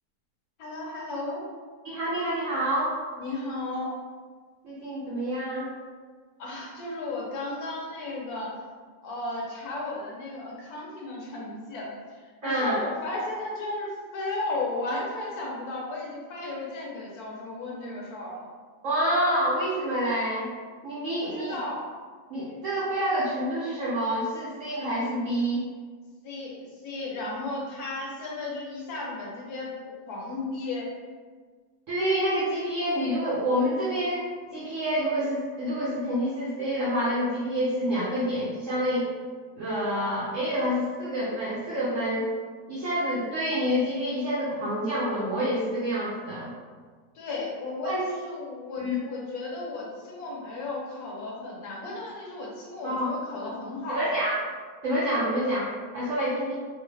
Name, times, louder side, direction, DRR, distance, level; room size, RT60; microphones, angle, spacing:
voice 1, 0.6-1.4 3.2-3.9 6.4-8.6 9.0-18.5 21.2-21.9 26.2-30.9 47.1-54.3, left 2 dB, 70° left, -3 dB, 1.1 m, -34 dB
voice 2, 1.8-3.0 4.6-5.7 12.4-12.8 18.8-20.5 20.8-21.6 22.3-25.7 31.9-34.3 34.5-39.1 39.6-42.3 42.7-46.5 47.8-48.0 48.8-48.9 52.8-53.1 53.9-54.4 54.8-56.5, equal, 70° right, -8 dB, 0.8 m, -27 dB
3.1 x 2.0 x 3.2 m, 1.5 s
omnidirectional pair, 1.8 m